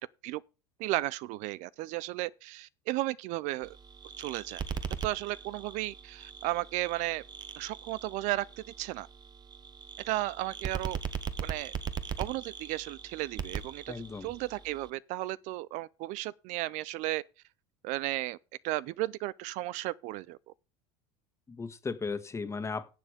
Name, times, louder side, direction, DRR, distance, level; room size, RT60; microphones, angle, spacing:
voice 1, 0.8-3.8 4.2-4.6 5.0-7.2 7.5-8.5 8.8-9.1 10.1-11.0 11.4-11.7 12.2-13.9 14.2-17.2 17.8-18.4 18.6-20.5, right 18 dB, 60° right, 0.5 m, -34 dB
sound 1, 3.6-14.9, right 7 dB, 30° right, 1.3 m, -40 dB
voice 2, 13.9-14.3 21.5-22.9, left 4 dB, 20° left, 1.7 m, -36 dB
11.5 x 7.4 x 5.1 m
supercardioid pair, 105°, 14 cm